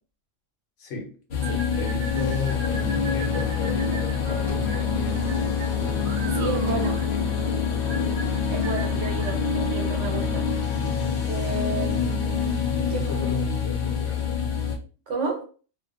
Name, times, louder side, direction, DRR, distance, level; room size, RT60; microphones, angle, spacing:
voice 1, 0.8-1.2 1.8-6.1 6.5-6.8 12.9-14.2, left 2 dB, 80° left, 1.1 m, -35 dB
sound 1, 1.3-14.8, left 6 dB, 60° left, 0.5 m, -26 dB
sound 2, 1.4-9.4, right 3 dB, 55° right, 0.6 m, -40 dB
Gunshot gunfire, 2.5-10.4, left 1 dB, 30° right, 0.9 m, -40 dB
voice 2, 6.3-6.9 8.5-10.5 11.3-13.1 15.1-15.4, right 4 dB, 80° right, 1.1 m, -31 dB
2.5 x 2.2 x 2.4 m
omnidirectional pair, 1.3 m